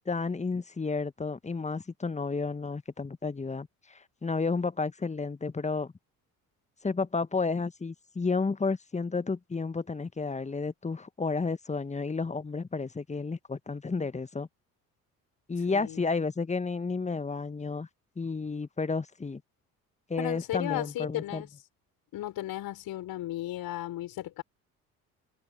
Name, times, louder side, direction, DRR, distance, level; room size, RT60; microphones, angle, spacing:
voice 1, 0.0-5.9 6.8-14.5 15.5-17.9 18.2-19.4 20.1-21.4, left 4 dB, 15° left, 1.6 m, -31 dB
voice 2, 15.7-16.0 20.2-21.5 22.1-24.4, left 14 dB, 50° left, 5.7 m, -35 dB
figure-of-eight pair, 55°, 44 cm